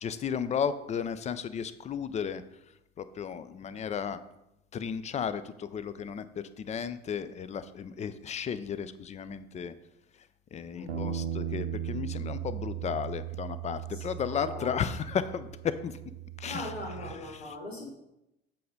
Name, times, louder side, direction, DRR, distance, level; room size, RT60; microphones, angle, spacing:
voice 1, 0.0-2.4 3.0-4.2 4.7-6.3 6.6-9.7 10.5-15.9 16.4-16.7 17.0-17.6, left 7 dB, 25° left, 14 dB, 0.4 m, -34 dB
voice 2, 10.7-11.4 13.9-14.8 16.4-17.9, left 1 dB, 85° left, -2 dB, 1.5 m, -41 dB
Bass guitar, 10.9-17.1, right 10 dB, 85° right, 0.7 m, -37 dB
7.7 x 3.5 x 5.2 m, 0.87 s
figure-of-eight pair, 60°, 31 cm